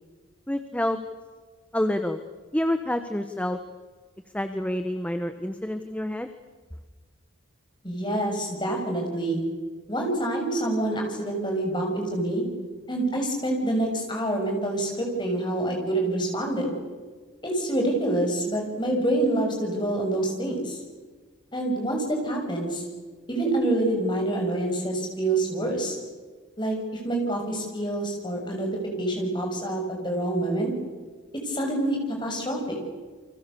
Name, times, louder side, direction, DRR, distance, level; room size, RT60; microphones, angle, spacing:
voice 1, 0.5-1.0 1.7-2.2 2.5-3.6 4.3-6.3, left 1 dB, 5° left, 8 dB, 1.1 m, -27 dB
voice 2, 7.8-9.4 9.9-12.4 12.9-16.7 17.4-20.8 21.5-22.8 23.3-26.0 26.6-26.8 27.0-28.7 29.0-30.7 31.4-32.8, right 1 dB, 20° left, 1 dB, 6.9 m, -26 dB
30.0 x 25.0 x 7.0 m, 1.4 s
head